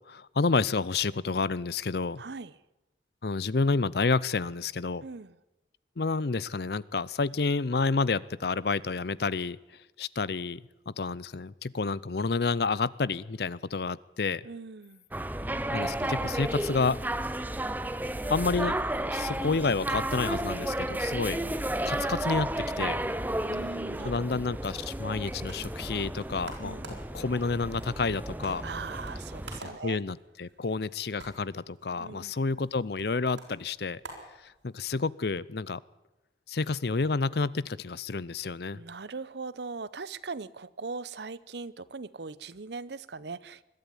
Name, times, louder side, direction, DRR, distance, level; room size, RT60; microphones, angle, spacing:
voice 1, 0.1-2.2 3.2-5.0 6.0-9.6 10.0-14.4 15.7-17.0 18.3-18.8 19.1-21.4 21.8-23.0 24.0-28.6 29.6-34.0 34.4-35.8 36.5-38.8, left 4 dB, 60° left, 21 dB, 0.6 m, -29 dB
voice 2, 2.2-2.6 5.0-5.4 14.4-15.0 23.4-24.1 26.6-27.0 28.6-30.0 32.0-32.3 38.7-43.6, right 4 dB, 70° right, 18 dB, 0.7 m, -40 dB
sound 1, 15.1-29.6, right 1 dB, 10° right, 0.7 m, -33 dB
sound 2, 25.5-35.0, right 2 dB, 85° right, 6.0 m, -51 dB
21.0 x 12.5 x 9.9 m, 1.0 s
head